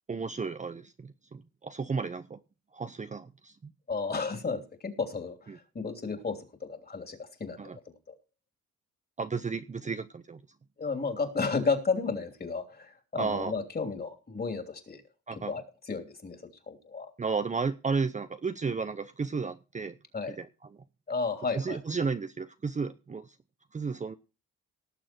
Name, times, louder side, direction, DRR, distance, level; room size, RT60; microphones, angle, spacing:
voice 1, 0.1-2.4 2.7-3.7 5.5-5.6 7.6-7.8 9.2-10.4 13.2-13.5 15.3-15.5 17.2-20.0 20.3-20.5 21.5-23.3 23.7-24.2, right 4 dB, 25° right, 10 dB, 0.7 m, -33 dB
voice 2, 3.9-7.8 8.1-8.2 10.8-15.0 15.3-16.4 16.7-17.1 20.1-20.4 21.1-21.8, left 4 dB, 30° left, 6 dB, 3.0 m, -33 dB
18.5 x 6.9 x 4.4 m, 0.32 s
cardioid pair, 90°, 30 cm